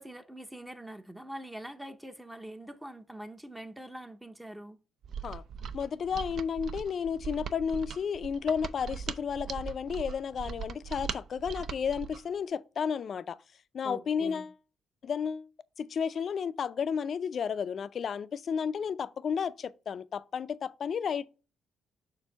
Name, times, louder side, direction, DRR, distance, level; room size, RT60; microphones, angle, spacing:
voice 1, 0.0-4.8 13.8-14.5, right 1 dB, 10° right, 0.6 m, -44 dB
Mechanisms, 5.0-12.2, right 7 dB, 65° right, 0.5 m, -40 dB
voice 2, 5.7-13.4 13.7-14.5 15.0-15.5 15.8-21.3, left 7 dB, 55° left, 0.4 m, -32 dB
6.8 x 2.6 x 5.5 m
cardioid pair, 90°, 0 cm